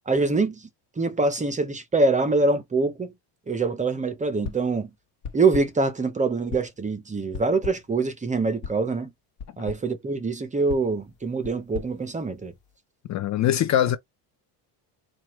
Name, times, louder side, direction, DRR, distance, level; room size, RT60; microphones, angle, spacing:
voice 1, 0.1-0.7 1.0-3.1 3.5-4.9 5.3-9.1 9.6-12.5, right 3 dB, 15° right, 0.5 m, -24 dB
sound 1, 4.4-4.8 5.2-5.9 6.5-6.9 7.3-8.0 8.6-8.9 9.4-9.9 10.7-12.8, left 5 dB, 65° left, 1.0 m, -39 dB
voice 2, 13.1-14.0, left 11 dB, 40° left, 0.4 m, -23 dB
4.5 x 2.4 x 3.0 m
cardioid pair, 145°, 46 cm